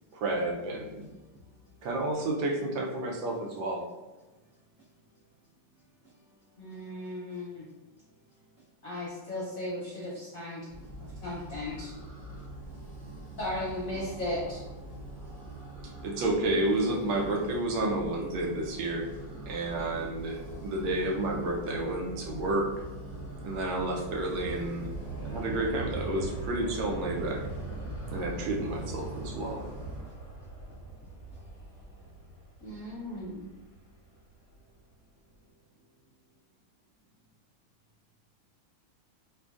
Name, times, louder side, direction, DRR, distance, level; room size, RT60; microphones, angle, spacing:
voice 1, 0.1-1.1 1.8-3.8 16.0-19.1 19.5-22.7 23.4-24.9 25.2-27.4 28.1-29.6, right 2 dB, 80° right, 1.3 m, -30 dB
voice 2, 1.0-1.9 4.8-4.9 6.0-6.9 7.3-7.5 8.0-8.4 11.1-11.2 12.3-12.8 14.9-15.0 15.6-16.0 19.6-20.2 20.5-20.7 24.9-25.1 27.8-27.9 29.9-30.3 30.6-32.3, left 1 dB, 50° right, 1.5 m, -59 dB
voice 3, 6.6-7.7 8.8-10.7 11.0-11.9 13.4-14.6 32.6-33.4, left 1 dB, 65° left, 0.9 m, -36 dB
sound 1, 10.7-30.0, right 2 dB, 20° right, 0.9 m, -42 dB
Aircraft, 24.4-34.9 35.4-35.5, right 2 dB, 80° left, 0.4 m, -43 dB
3.7 x 2.2 x 2.4 m
omnidirectional pair, 2.1 m